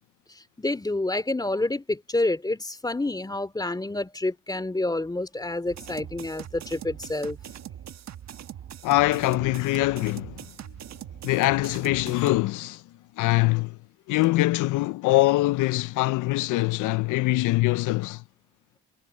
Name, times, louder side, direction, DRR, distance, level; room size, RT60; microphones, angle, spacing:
voice 1, 0.6-7.4, left 2 dB, 15° left, 2.6 m, -28 dB
sound 1, 5.7-12.4, right 10 dB, 65° right, 1.4 m, -42 dB
voice 2, 8.8-10.5 11.2-12.8 13.2-13.8 14.1-18.2, left 19 dB, 85° left, 0.5 m, -23 dB
cardioid pair, 90°, 30 cm